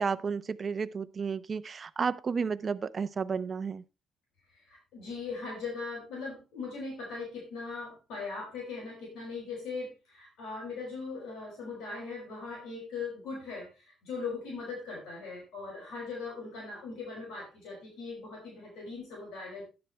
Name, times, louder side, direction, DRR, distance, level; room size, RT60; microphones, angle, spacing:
voice 1, 0.0-3.8, right 5 dB, 40° right, 0.6 m, -32 dB
voice 2, 4.7-19.6, left 4 dB, 90° left, 6.2 m, -40 dB
12.0 x 9.7 x 3.3 m
cardioid pair, 90°, 0 cm